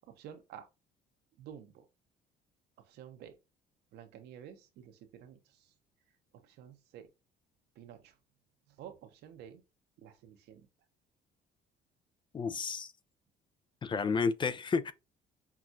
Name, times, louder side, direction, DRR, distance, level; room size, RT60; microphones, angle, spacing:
voice 1, 0.1-0.7 1.4-1.9 2.9-3.3 3.9-5.7 6.3-7.1 7.8-8.1 8.8-9.6 10.0-10.7, right 9 dB, 80° right, 0.9 m, -51 dB
voice 2, 12.3-12.9 13.8-14.9, left 5 dB, 30° left, 0.4 m, -31 dB
5.8 x 2.4 x 2.4 m
cardioid pair, 110°, 17 cm